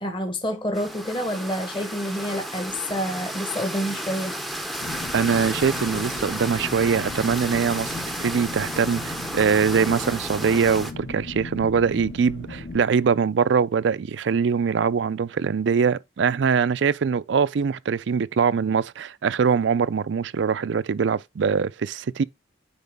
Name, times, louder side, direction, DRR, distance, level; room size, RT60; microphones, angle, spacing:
voice 1, 0.0-4.3, equal, 25° left, 1.2 m, -28 dB
sound 1, 0.7-10.9, right 1 dB, ahead, 0.6 m, -33 dB
sound 2, 4.8-12.8, left 2 dB, 60° left, 1.6 m, -37 dB
voice 2, 5.1-8.0 8.2-22.2, right 6 dB, 70° right, 0.4 m, -23 dB
9.4 x 4.7 x 3.5 m
head